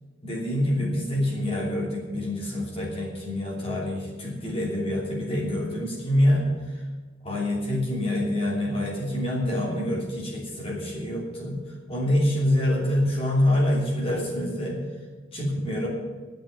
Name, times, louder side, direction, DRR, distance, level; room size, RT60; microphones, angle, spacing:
voice 1, 0.2-6.8 7.2-11.6 11.9-14.8 15.3-15.9, left 1 dB, 30° left, -3 dB, 3.1 m, -26 dB
11.0 x 8.1 x 9.5 m, 1.4 s
head